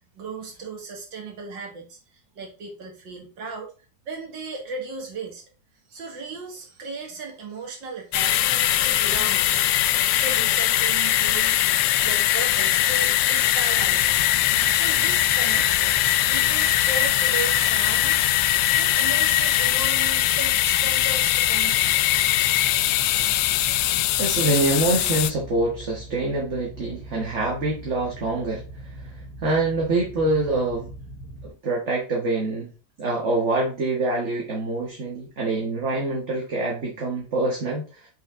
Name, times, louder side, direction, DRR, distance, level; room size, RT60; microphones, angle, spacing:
voice 1, 0.1-3.7 4.1-5.4 5.9-14.2 14.8-18.2 18.5-22.0, right 4 dB, 85° right, 1 dB, 2.6 m, -36 dB
sound 1, 8.1-25.3, left 13 dB, 75° left, 1.1 m, -21 dB
sound 2, 13.7-31.5, right 1 dB, 55° left, 2.6 m, -41 dB
voice 2, 24.2-30.9 31.4-32.7 33.0-38.1, right 2 dB, 40° right, -1 dB, 1.6 m, -25 dB
6.3 x 5.6 x 3.7 m, 0.34 s
omnidirectional pair, 2.0 m